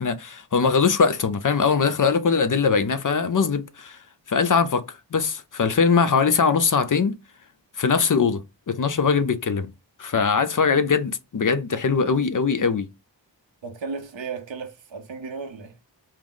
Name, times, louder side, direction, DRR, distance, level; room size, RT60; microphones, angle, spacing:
voice 1, 0.0-4.0 4.3-4.9 5.1-7.2 7.8-8.4 8.7-9.7 10.0-12.9, left 5 dB, 45° left, 0.5 m, -21 dB
voice 2, 13.6-15.8, right 4 dB, 90° right, 0.8 m, -35 dB
4.6 x 2.0 x 3.8 m
wide cardioid pair, 55°, 44 cm